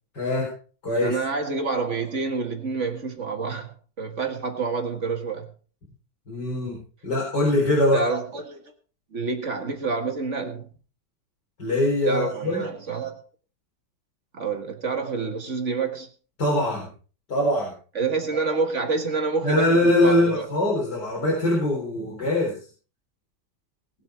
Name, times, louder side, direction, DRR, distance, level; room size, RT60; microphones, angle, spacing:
voice 1, 0.1-0.5 0.8-1.2 6.3-6.8 7.0-8.0 11.6-12.7 16.4-16.9 17.3-17.7 19.4-22.6, left 1 dB, 70° left, -5 dB, 4.9 m, -22 dB
voice 2, 1.0-5.5 7.9-8.6 9.1-10.7 12.1-13.2 14.3-16.1 18.0-20.5, right 4 dB, 45° right, 5 dB, 2.0 m, -28 dB
19.5 x 8.2 x 4.5 m, 0.39 s
omnidirectional pair, 1.9 m